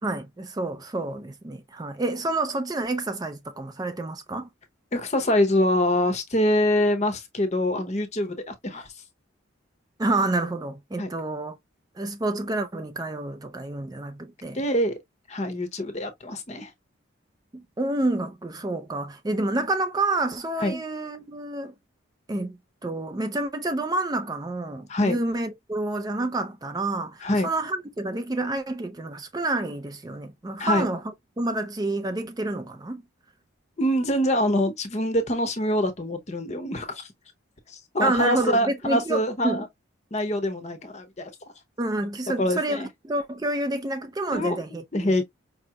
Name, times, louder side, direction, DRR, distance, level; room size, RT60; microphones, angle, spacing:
voice 1, 0.0-4.5 10.0-11.6 12.0-14.6 17.5-21.7 22.3-22.6 22.8-31.0 31.4-33.0 38.0-39.6 41.8-45.2, right 2 dB, 20° right, 0.4 m, -28 dB
voice 2, 4.9-8.9 11.0-11.1 14.5-14.9 15.3-16.7 20.6-20.8 24.9-25.2 27.2-27.5 30.6-30.9 33.8-37.1 37.7-39.7 40.1-41.3 42.4-42.9 44.3-44.6 44.9-45.2, left 1 dB, 35° left, 0.7 m, -25 dB
5.1 x 2.9 x 2.2 m
head